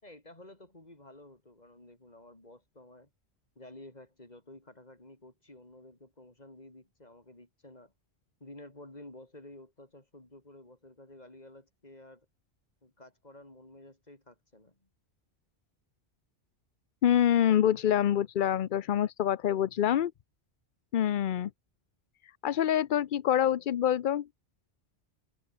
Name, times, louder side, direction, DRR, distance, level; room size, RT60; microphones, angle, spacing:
voice 1, 0.0-3.1 3.6-7.9 8.4-12.3 12.8-14.8, left 1 dB, 40° left, 4.4 m, -52 dB
voice 2, 17.0-20.1 20.9-21.5 22.2-24.3, left 10 dB, 55° left, 0.7 m, -26 dB
omnidirectional pair, 1.1 m